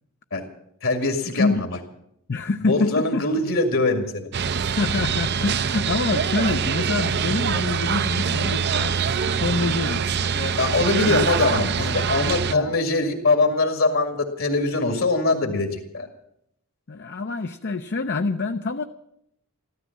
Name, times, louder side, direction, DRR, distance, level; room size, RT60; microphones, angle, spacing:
voice 1, 0.8-1.7 2.6-4.3 10.6-16.1, left 3 dB, 70° left, 4 dB, 2.2 m, -22 dB
voice 2, 1.3-1.6 2.3-3.2 4.8-10.6 11.0-12.0 12.5-12.7 16.9-18.8, left 3 dB, 55° left, 7 dB, 0.6 m, -26 dB
sound 1, 4.3-12.5, right 6 dB, 50° right, 0.6 m, -24 dB
14.0 x 13.5 x 7.3 m, 0.76 s
head